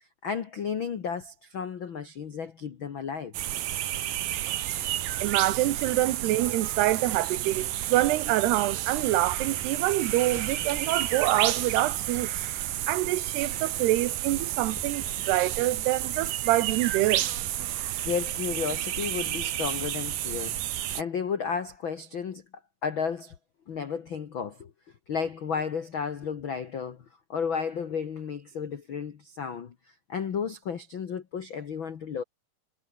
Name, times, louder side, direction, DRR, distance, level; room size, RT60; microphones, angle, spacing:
voice 1, 0.2-3.3 18.0-20.6 20.9-22.4 22.8-23.3 23.7-24.7 25.1-27.0 27.3-29.7 30.1-32.2, left 6 dB, 80° left, 1.1 m, -33 dB
sound 1, 3.3-21.0, right 13 dB, 65° right, 3.0 m, -31 dB
voice 2, 5.2-12.4 12.9-17.2, right 16 dB, 85° right, 3.1 m, -26 dB
sound 2, 10.3-14.3 14.7-18.1, equal, 5° left, 6.3 m, -52 dB
omnidirectional pair, 4.6 m